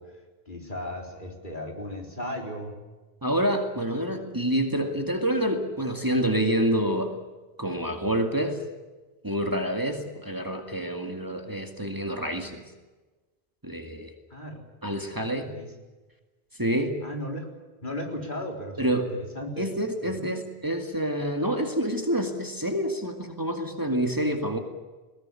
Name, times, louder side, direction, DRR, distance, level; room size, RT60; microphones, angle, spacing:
voice 1, 0.0-2.8 14.3-14.6 15.4-15.7 17.0-17.5 17.8-19.7 20.0-20.3, left 1 dB, 50° left, 2 dB, 4.2 m, -36 dB
voice 2, 3.2-7.2 7.6-8.6 9.2-12.6 13.6-14.1 14.8-15.5 16.6-17.0 18.8-19.1 19.6-24.6, right 1 dB, 20° right, 4 dB, 2.2 m, -27 dB
21.0 x 18.5 x 9.8 m, 1.2 s
omnidirectional pair, 1.0 m